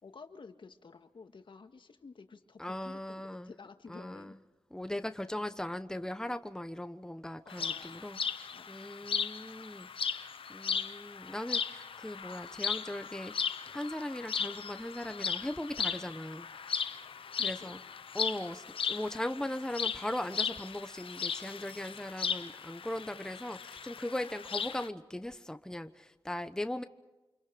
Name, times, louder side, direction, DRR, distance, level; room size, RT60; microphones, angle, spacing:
voice 1, 0.0-4.4 7.4-8.7 17.4-17.8, left 4 dB, 65° left, 7 dB, 1.7 m, -52 dB
voice 2, 2.6-3.5 3.9-4.3 4.7-13.3 13.7-17.0 17.4-17.8 18.1-26.8, left 1 dB, 5° left, 9 dB, 1.1 m, -39 dB
sound 1, 7.5-24.9, left 6 dB, 90° left, 0.9 m, -37 dB
29.0 x 26.5 x 5.1 m, 1.1 s
wide cardioid pair, 70°, 9 cm